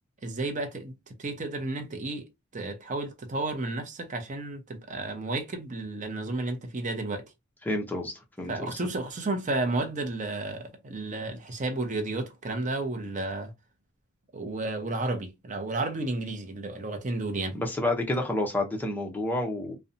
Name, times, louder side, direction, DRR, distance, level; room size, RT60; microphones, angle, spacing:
voice 1, 0.2-2.3 2.5-7.3 8.5-13.5 14.3-17.6, right 2 dB, 35° right, 0.6 m, -32 dB
voice 2, 7.6-8.8 17.5-19.8, left 1 dB, 10° left, 0.6 m, -29 dB
2.6 x 2.1 x 2.5 m
head